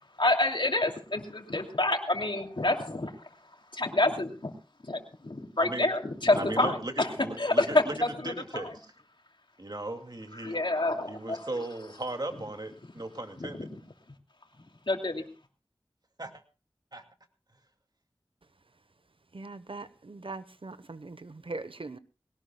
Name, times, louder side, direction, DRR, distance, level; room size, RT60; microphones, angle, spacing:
voice 1, 0.2-3.1 3.7-4.5 4.8-7.1 7.4-8.6 10.4-11.4 13.4-13.7 14.9-15.2, left 2 dB, 60° left, 4 dB, 2.8 m, -28 dB
voice 2, 6.3-7.9 8.2-8.9 9.6-10.6 11.1-13.7 16.2-16.3 16.9-17.0, right 2 dB, 50° right, 5 dB, 2.4 m, -37 dB
voice 3, 19.3-22.0, right 3 dB, 75° right, 13 dB, 1.0 m, -41 dB
21.0 x 18.0 x 2.3 m, 0.32 s
wide cardioid pair, 45°, 9 cm